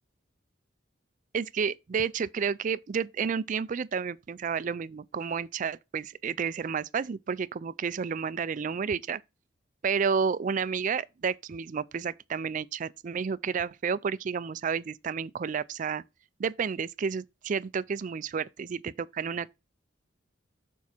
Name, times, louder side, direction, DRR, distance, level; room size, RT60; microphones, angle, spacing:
voice 1, 1.3-9.2 9.8-16.0 16.4-19.5, right 6 dB, 40° right, 0.3 m, -31 dB
7.2 x 4.6 x 4.3 m
head